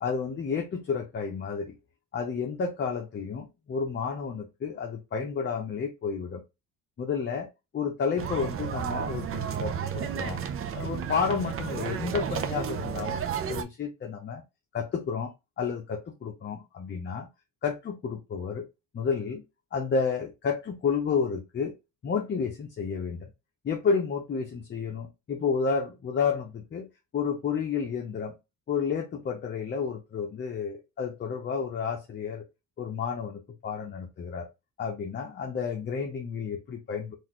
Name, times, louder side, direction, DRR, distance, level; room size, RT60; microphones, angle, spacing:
voice 1, 0.0-1.8 2.1-6.4 7.0-10.4 10.7-14.4 14.7-17.3 17.6-18.7 18.9-19.4 19.7-21.7 22.0-23.3 23.6-28.4 28.7-32.4 32.8-34.5 34.8-37.2, left 5 dB, 35° left, 0.7 m, -31 dB
sound 1, 8.2-13.6, right 8 dB, 45° right, 0.6 m, -32 dB
3.8 x 2.6 x 3.0 m
cardioid pair, 100°, 31 cm